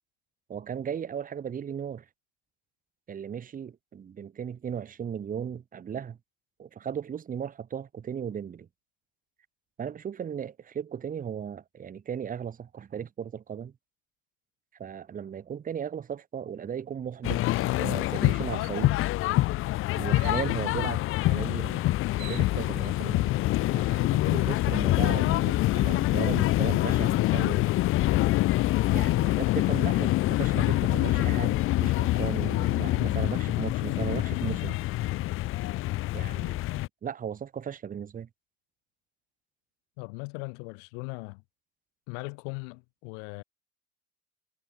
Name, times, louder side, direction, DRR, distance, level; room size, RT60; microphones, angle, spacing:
voice 1, 0.5-2.0 3.1-6.2 6.6-8.7 9.8-13.7 14.8-17.4 17.8-19.0 20.0-21.8 22.2-23.3 23.7-27.7 28.9-34.8 36.1-36.6 37.0-38.3, right 8 dB, 30° right, 1.1 m, -36 dB
sound 1, 17.2-36.9, left 17 dB, 45° left, 0.4 m, -25 dB
sound 2, 17.6-17.7 18.2-18.3 18.6-19.2 20.2-20.6 21.7-21.8 22.0-22.9, right 36 dB, 80° right, 2.3 m, -49 dB
voice 2, 40.0-41.4 42.1-43.4, left 40 dB or more, 85° left, 2.2 m, -39 dB
supercardioid pair, 105°, 29 cm